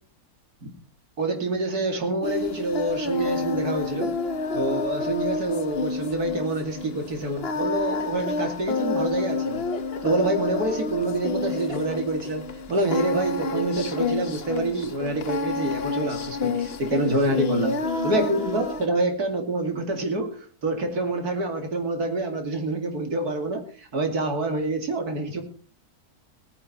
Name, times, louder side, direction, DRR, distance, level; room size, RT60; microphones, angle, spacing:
voice 1, 1.2-4.1 4.5-9.6 10.0-12.4 12.7-17.8 18.0-25.4, right 2 dB, 80° right, 4 dB, 3.0 m, -26 dB
Singing, 2.2-18.9, left 3 dB, 45° left, 1.1 m, -29 dB
18.5 x 9.8 x 4.3 m, 0.40 s
omnidirectional pair, 1.6 m